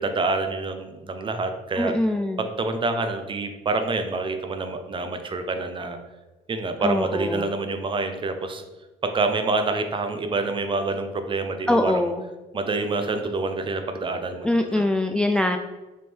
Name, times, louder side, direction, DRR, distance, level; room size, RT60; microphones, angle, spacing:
voice 1, 0.0-1.9 2.4-6.0 6.5-8.6 9.0-12.0 12.5-14.8, right 3 dB, 30° right, 7 dB, 0.8 m, -27 dB
voice 2, 1.8-2.5 6.8-7.4 11.7-12.2 14.4-15.6, left 1 dB, 5° left, 5 dB, 0.3 m, -23 dB
6.1 x 3.6 x 4.4 m, 1.1 s
cardioid pair, 110°, 17 cm